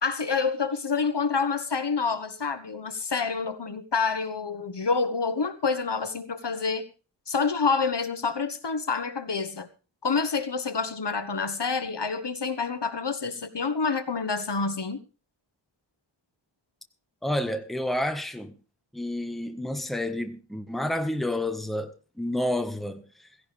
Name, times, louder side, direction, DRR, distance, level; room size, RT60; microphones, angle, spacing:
voice 1, 0.0-6.9 7.3-9.7 10.0-15.0, left 5 dB, 60° left, 1.4 m, -28 dB
voice 2, 17.2-18.6 18.9-23.1, left 1 dB, ahead, 1.5 m, -29 dB
16.5 x 16.0 x 3.5 m
wide cardioid pair, 75°, 48 cm